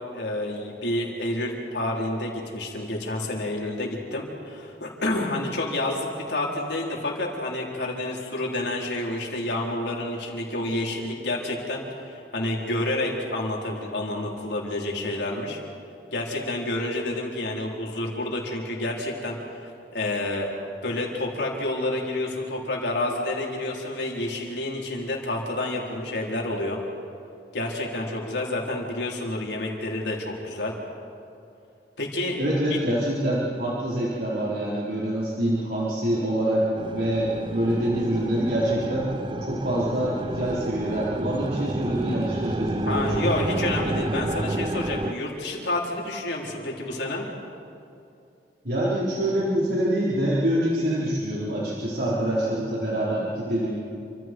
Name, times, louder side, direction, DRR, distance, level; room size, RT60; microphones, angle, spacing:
voice 1, 0.1-15.6 16.1-26.8 27.5-30.8 32.0-32.4 42.9-47.3, left 1 dB, 85° left, -2 dB, 4.3 m, -29 dB
voice 2, 32.4-39.1 39.4-43.4 48.6-53.8, right 1 dB, 65° right, -7 dB, 4.3 m, -25 dB
sound 1, 36.8-45.1, right 1 dB, 30° right, 0.6 m, -30 dB
29.0 x 26.5 x 4.7 m, 2.5 s
head